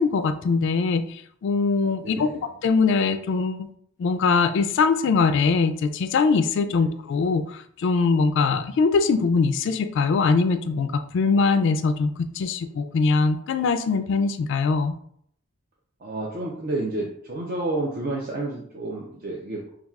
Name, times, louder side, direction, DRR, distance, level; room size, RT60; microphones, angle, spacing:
voice 1, 0.0-2.3 2.6-3.7 4.0-15.0, left 4 dB, 60° left, 10 dB, 0.3 m, -22 dB
voice 2, 2.0-2.4 6.7-7.0 16.0-19.6, right 2 dB, 45° right, -2 dB, 0.5 m, -30 dB
5.8 x 2.3 x 2.3 m, 0.66 s
head